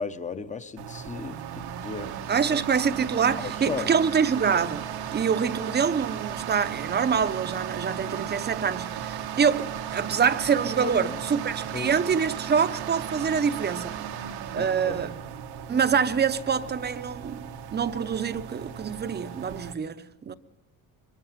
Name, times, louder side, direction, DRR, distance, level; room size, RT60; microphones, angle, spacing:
voice 1, 0.0-2.1 3.3-3.9 10.8-11.2 11.7-11.9 14.5-15.0, left 5 dB, 20° left, 0.8 m, -35 dB
sound 1, 0.8-19.7, right 9 dB, 90° right, 1.4 m, -36 dB
voice 2, 2.3-4.8 5.1-14.0 14.5-15.1 15.7-20.3, right 6 dB, 25° right, 0.7 m, -25 dB
24.5 x 23.0 x 5.8 m
cardioid pair, 155°, 38 cm